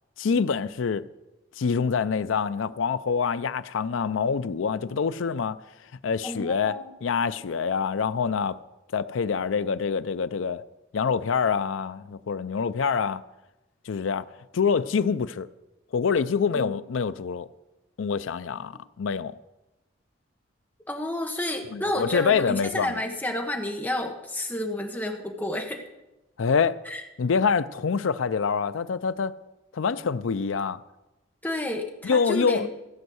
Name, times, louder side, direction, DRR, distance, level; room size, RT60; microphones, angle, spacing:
voice 1, 0.2-1.0 1.6-5.6 6.0-8.6 8.9-10.6 10.9-13.2 13.9-14.2 14.5-15.5 15.9-17.5 18.0-19.3 21.7-22.9 26.4-26.8 27.2-29.3 29.7-30.8 32.0-32.7, left 6 dB, 85° left, 0.5 m, -26 dB
voice 2, 6.2-6.9 16.5-16.7 20.9-25.8 26.8-27.0 31.4-32.7, left 1 dB, 10° left, 1.2 m, -30 dB
15.0 x 5.5 x 7.8 m
head